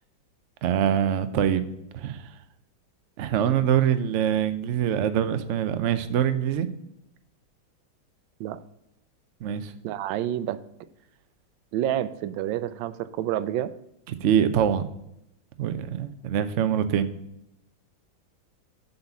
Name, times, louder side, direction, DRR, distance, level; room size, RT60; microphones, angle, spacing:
voice 1, 0.6-1.6 1.9-2.3 3.2-6.7 9.4-9.7 14.2-14.9 15.6-17.1, right 9 dB, 70° right, 11 dB, 0.7 m, -24 dB
voice 2, 9.8-10.6 11.7-13.7, right 12 dB, 90° right, 15 dB, 1.3 m, -29 dB
7.7 x 4.2 x 7.0 m, 0.82 s
omnidirectional pair, 2.0 m